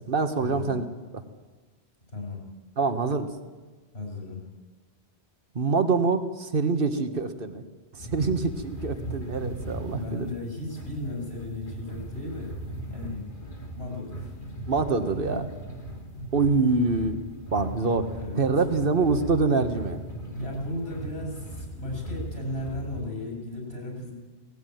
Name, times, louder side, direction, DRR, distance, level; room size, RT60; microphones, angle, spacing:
voice 1, 0.1-0.8 1.1-1.2 2.8-3.3 5.5-7.6 7.9-10.3 14.7-15.5 16.3-17.2 17.5-18.1 18.4-20.0, right 4 dB, 55° right, 9 dB, 1.6 m, -25 dB
voice 2, 3.9-4.4 9.8-12.5 12.9-13.3 13.8-14.3 18.0-18.4 20.2-24.1, left 2 dB, 70° left, 0 dB, 6.6 m, -35 dB
sound 1, 8.0-23.0, right 1 dB, 50° left, 2.7 m, -38 dB
18.0 x 16.0 x 9.3 m, 1.3 s
omnidirectional pair, 1.1 m